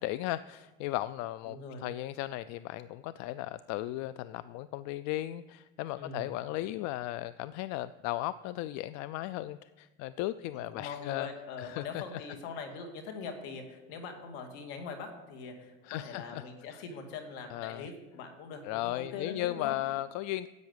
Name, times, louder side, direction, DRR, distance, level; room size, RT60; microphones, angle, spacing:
voice 1, 0.0-11.3 11.6-12.0 15.8-16.4 16.7-16.8 17.5-17.9 18.6-20.5, left 15 dB, 65° left, 16 dB, 0.5 m, -36 dB
voice 2, 1.5-1.9 6.0-6.3 10.5-19.8, left 5 dB, 85° left, 5 dB, 2.3 m, -42 dB
10.5 x 8.3 x 8.0 m, 1.1 s
supercardioid pair, 115°, 30 cm